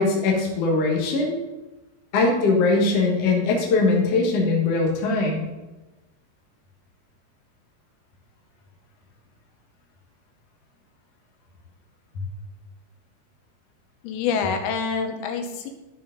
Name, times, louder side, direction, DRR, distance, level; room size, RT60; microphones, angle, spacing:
voice 1, 0.0-1.4 2.1-5.5, left 3 dB, 55° left, -1 dB, 1.7 m, -21 dB
voice 2, 14.0-15.7, left 6 dB, 90° left, 5 dB, 3.2 m, -26 dB
13.0 x 5.2 x 3.9 m, 1.1 s
omnidirectional pair, 5.0 m